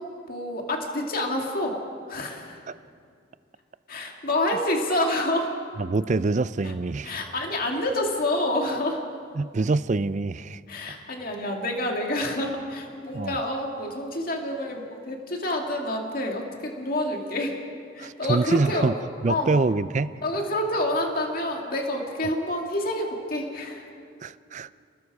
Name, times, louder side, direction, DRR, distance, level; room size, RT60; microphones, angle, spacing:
voice 1, 0.0-1.8 2.1-2.6 3.9-5.5 6.6-6.7 7.0-9.0 10.7-17.6 17.9-18.9 19.3-19.5 20.2-23.9, left 1 dB, 50° left, 1 dB, 2.4 m, -28 dB
voice 2, 5.8-7.1 9.4-10.6 13.1-13.4 18.0-18.9 19.2-20.2 24.2-24.8, right 3 dB, 40° right, 16 dB, 0.4 m, -25 dB
29.5 x 19.5 x 4.9 m, 2.4 s
head